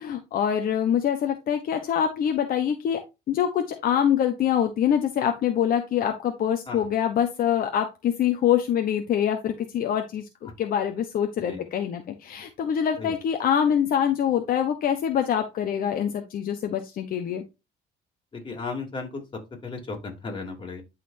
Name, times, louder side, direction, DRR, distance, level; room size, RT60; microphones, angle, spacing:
voice 1, 0.0-3.0 3.3-17.4, left 9 dB, 60° left, 6 dB, 1.0 m, -25 dB
voice 2, 18.3-19.2 19.6-20.8, left 4 dB, 30° left, 2 dB, 3.0 m, -35 dB
12.0 x 4.2 x 2.7 m, 0.25 s
cardioid pair, 110°, 17 cm